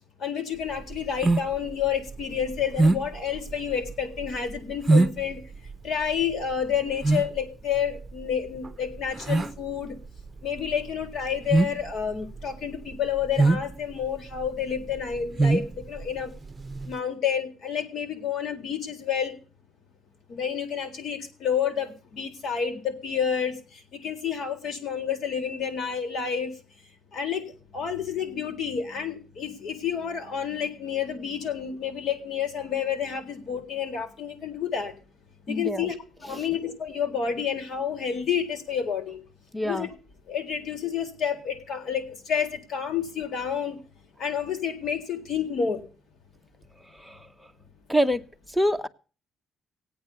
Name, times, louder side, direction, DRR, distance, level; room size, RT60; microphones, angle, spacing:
voice 1, 0.2-5.4 5.8-9.9 10.4-16.3 16.9-19.3 20.3-23.6 24.0-26.5 27.1-27.4 27.7-35.0 35.5-36.0 36.2-39.2 39.6-39.9 40.3-43.8 44.2-45.8, left 7 dB, 70° left, 3.9 m, -29 dB
sound 1, 0.6-17.0, right 2 dB, 25° right, 0.9 m, -26 dB
voice 2, 35.5-35.9 36.2-36.6 39.5-39.9 46.9-47.3 47.9-48.9, equal, 5° left, 1.1 m, -27 dB
17.5 x 8.7 x 6.9 m
cardioid pair, 90°, 0 cm